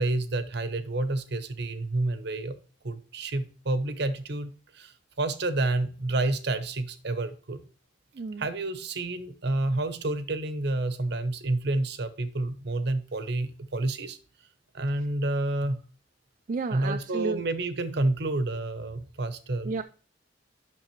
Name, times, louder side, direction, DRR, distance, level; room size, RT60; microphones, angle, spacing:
voice 1, 0.0-2.6 2.8-7.6 8.4-14.2 14.7-15.8 16.7-19.7, right 2 dB, 60° right, 11 dB, 0.9 m, -29 dB
voice 2, 8.1-8.5 16.5-17.4 19.6-19.8, right 4 dB, 40° right, 6 dB, 0.4 m, -32 dB
9.0 x 6.1 x 3.1 m, 0.41 s
head